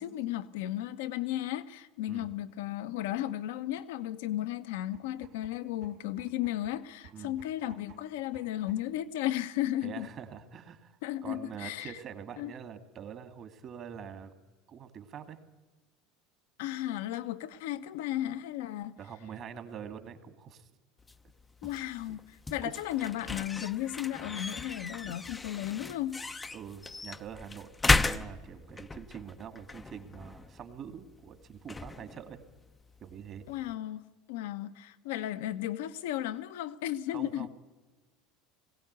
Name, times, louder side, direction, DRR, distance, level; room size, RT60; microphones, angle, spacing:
voice 1, 0.0-10.1 11.0-12.0 12.4-12.5 16.6-18.9 21.6-26.4 33.5-34.0 34.3-37.5, left 13 dB, 80° left, 1.0 m, -35 dB
sound 1, 4.9-9.0, right 6 dB, 80° right, 1.9 m, -57 dB
voice 2, 9.8-11.0 11.2-14.3 14.7-15.4 19.0-20.7 22.1-22.2 22.6-22.9 26.5-32.4 33.0-33.4 37.1-37.5, right 8 dB, 45° right, 2.3 m, -45 dB
sound 2, 21.0-33.7, left 3 dB, 15° left, 0.7 m, -36 dB
21.0 x 16.5 x 8.2 m
hypercardioid pair, 95°, 0 cm